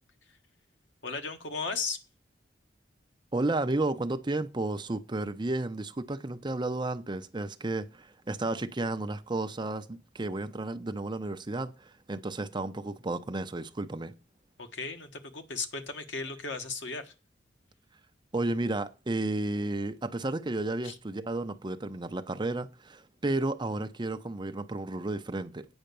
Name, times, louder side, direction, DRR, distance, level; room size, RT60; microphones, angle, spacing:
voice 1, 1.0-2.0 14.6-17.1 20.8-21.0, left 4 dB, 75° left, 1.4 m, -36 dB
voice 2, 3.3-14.1 18.3-25.7, right 2 dB, 25° right, 0.7 m, -32 dB
8.9 x 5.7 x 6.8 m
head